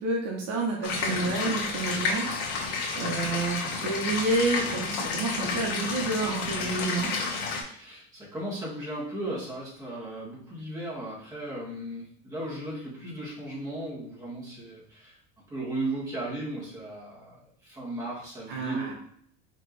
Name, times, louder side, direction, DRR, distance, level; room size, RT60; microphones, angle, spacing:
voice 1, 0.0-2.3 2.9-7.1 18.5-18.9, right 2 dB, 55° right, -1 dB, 1.1 m, -29 dB
sound 1, 0.8-7.6, left 4 dB, 85° left, 1.3 m, -30 dB
voice 2, 7.6-15.1 15.5-18.9, right 1 dB, 10° right, -7 dB, 1.9 m, -36 dB
4.9 x 3.1 x 3.3 m, 0.64 s
cardioid pair, 160°, 38 cm